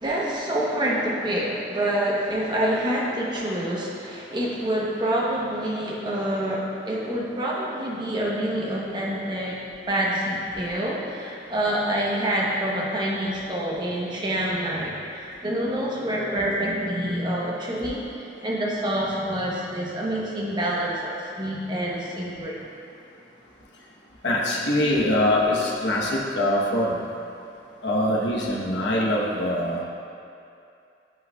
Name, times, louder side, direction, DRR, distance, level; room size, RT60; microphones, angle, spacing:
voice 1, 0.0-22.6, right 1 dB, 25° right, -4 dB, 1.0 m, -27 dB
voice 2, 24.2-27.0 27.8-29.8, left 1 dB, 70° left, -4 dB, 1.1 m, -23 dB
11.0 x 5.3 x 2.3 m, 2.5 s
head